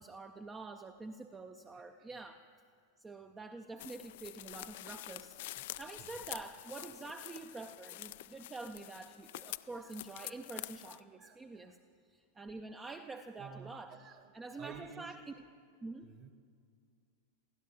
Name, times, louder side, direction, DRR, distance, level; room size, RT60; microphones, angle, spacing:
voice 1, 0.0-2.4 3.0-11.8 12.1-14.0 14.3-15.3 15.8-16.1, right 3 dB, 15° right, 7 dB, 0.5 m, -47 dB
voice 2, 1.7-2.1 5.6-5.7 6.0-6.2 8.8-8.9 9.7-10.0 11.1-11.8 13.4-15.1 16.0-16.3, right 6 dB, 35° right, 8 dB, 1.4 m, -53 dB
sound 1, 3.8-11.0, left 16 dB, 55° left, 0.3 m, -47 dB
28.5 x 16.0 x 3.0 m, 2.3 s
figure-of-eight pair, 90°, 0 cm